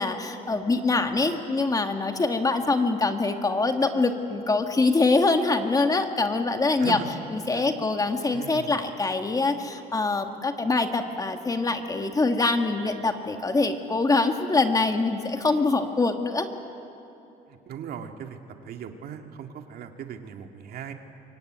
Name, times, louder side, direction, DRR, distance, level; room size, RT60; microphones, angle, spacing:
voice 1, 0.0-7.0 7.3-16.5, left 3 dB, 20° left, 6 dB, 1.9 m, -24 dB
voice 2, 6.8-7.1 7.5-7.7 8.3-8.8 17.5-18.4 18.6-20.9, right 8 dB, 65° right, 5 dB, 2.1 m, -38 dB
25.0 x 23.0 x 9.5 m, 2.8 s
cardioid pair, 110°, 17 cm